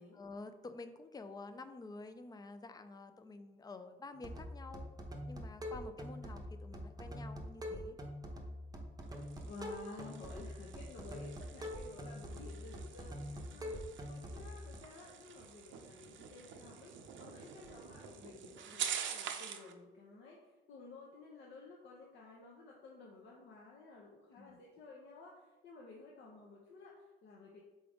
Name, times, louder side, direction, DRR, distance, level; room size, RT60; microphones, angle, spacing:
voice 1, 0.1-4.9 5.3-8.0 13.5-13.6 24.4-24.6, left 3 dB, 20° left, 10 dB, 0.3 m, -50 dB
sound 1, 4.1-14.8, equal, 20° right, 0.7 m, -45 dB
sound 2, 9.0-19.7, right 8 dB, 70° right, 0.5 m, -47 dB
voice 2, 9.5-16.9 17.2-27.6, left 3 dB, 65° left, -3 dB, 0.8 m, -53 dB
3.8 x 3.6 x 3.4 m, 1.2 s
cardioid pair, 90°, 20 cm